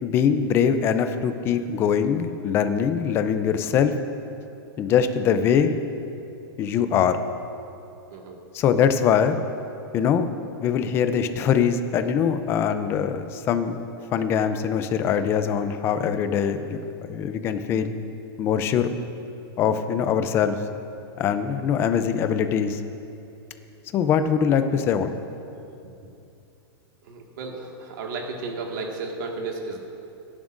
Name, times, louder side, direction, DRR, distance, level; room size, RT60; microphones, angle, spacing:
voice 1, 0.0-3.9 4.8-5.7 6.6-7.2 8.5-9.4 9.9-10.3 10.6-16.8 17.1-17.9 18.4-18.9 19.6-20.6 21.2-22.8 23.9-25.1, left 7 dB, 20° left, 9 dB, 0.5 m, -22 dB
voice 2, 27.0-29.8, right 3 dB, 50° right, 1 dB, 1.9 m, -33 dB
22.0 x 11.0 x 2.6 m, 2.7 s
supercardioid pair, 165°, 13 cm